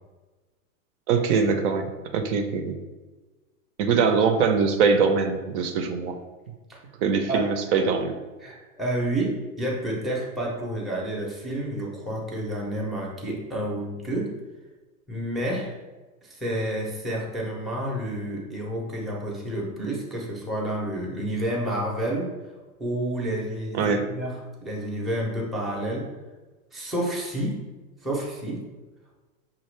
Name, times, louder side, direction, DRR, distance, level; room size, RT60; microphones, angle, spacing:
voice 1, 1.1-2.8 3.8-6.2 7.0-8.2 23.7-24.1, right 5 dB, 55° right, 6 dB, 0.6 m, -23 dB
voice 2, 7.3-7.8 8.4-14.4 15.1-15.8 16.2-22.3 22.8-26.1 26.7-27.6 28.0-28.6, right 1 dB, ahead, -5 dB, 0.6 m, -30 dB
5.7 x 2.5 x 3.1 m, 1.2 s
supercardioid pair, 135°, 42 cm